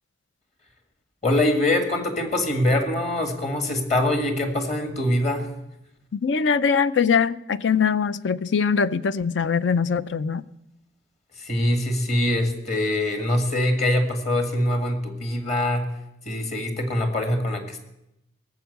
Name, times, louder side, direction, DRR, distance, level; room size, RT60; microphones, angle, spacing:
voice 1, 1.2-5.5 11.4-15.9 16.3-17.8, left 1 dB, 35° left, 1.8 m, -23 dB
voice 2, 6.1-10.4, left 6 dB, 65° left, 0.5 m, -22 dB
18.0 x 7.2 x 8.0 m
head